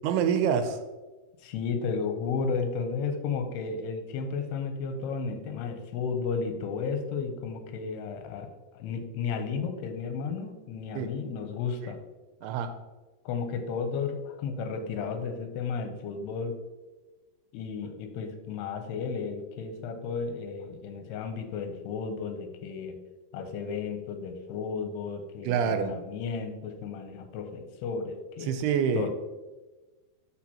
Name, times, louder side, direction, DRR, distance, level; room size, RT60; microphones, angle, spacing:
voice 1, 0.0-0.8 10.9-11.1 12.4-12.7 25.4-25.9 28.4-29.1, right 7 dB, 85° right, 8 dB, 2.5 m, -26 dB
voice 2, 1.4-8.5 8.7-12.0 13.3-16.6 17.5-23.0 23.3-28.5 29.0-29.1, left 5 dB, 85° left, 7 dB, 2.8 m, -33 dB
12.0 x 4.5 x 2.9 m, 1.2 s
omnidirectional pair, 4.7 m